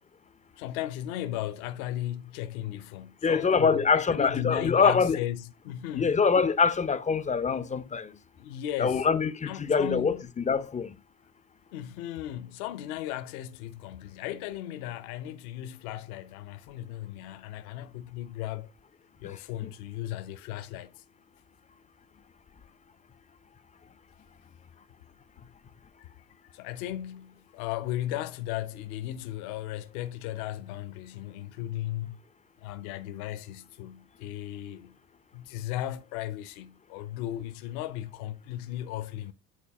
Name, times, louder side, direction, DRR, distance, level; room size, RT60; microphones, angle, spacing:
voice 1, 0.6-6.2 8.4-9.1 9.5-10.3 11.7-18.7 19.2-20.9 26.0-26.1 26.5-32.2 32.6-35.0 35.3-39.3, left 13 dB, 60° left, 1.1 m, -36 dB
voice 2, 3.2-5.2 6.0-8.1 8.8-10.9, left 5 dB, 15° left, 0.7 m, -24 dB
9.9 x 4.1 x 3.6 m
hypercardioid pair, 75°, 48 cm